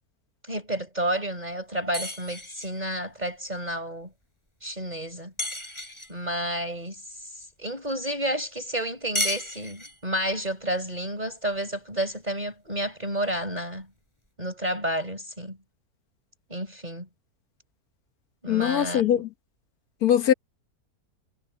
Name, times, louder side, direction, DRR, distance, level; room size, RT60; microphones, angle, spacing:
voice 1, 0.5-4.1 4.6-5.3 6.1-13.9 14.4-15.6 16.5-17.1 18.4-19.2, right 1 dB, 25° right, 5.2 m, -31 dB
sound 1, 1.9-2.8 5.4-6.2 9.1-10.1, left 1 dB, 15° left, 7.7 m, -32 dB
voice 2, 18.5-19.3 20.0-20.3, left 10 dB, 70° left, 1.7 m, -21 dB
omnidirectional pair, 1.7 m